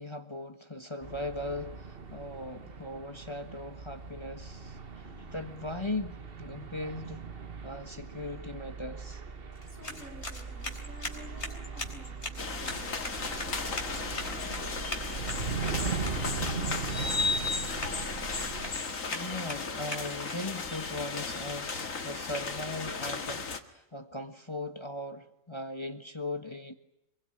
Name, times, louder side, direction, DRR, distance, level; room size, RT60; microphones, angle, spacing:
voice 1, 0.0-7.2 7.6-9.2 19.1-26.7, left 2 dB, 20° left, 7 dB, 1.5 m, -39 dB
sound 1, 1.0-18.7, right 5 dB, 45° right, 1.5 m, -39 dB
sound 2, 9.5-20.7, left 2 dB, 55° left, 4.2 m, -42 dB
voice 2, 9.7-17.3, left 1 dB, 75° right, 3 dB, 6.6 m, -53 dB
sound 3, 12.4-23.6, left 4 dB, 75° left, 2.3 m, -35 dB
25.5 x 23.0 x 9.9 m, 0.85 s
omnidirectional pair, 1.4 m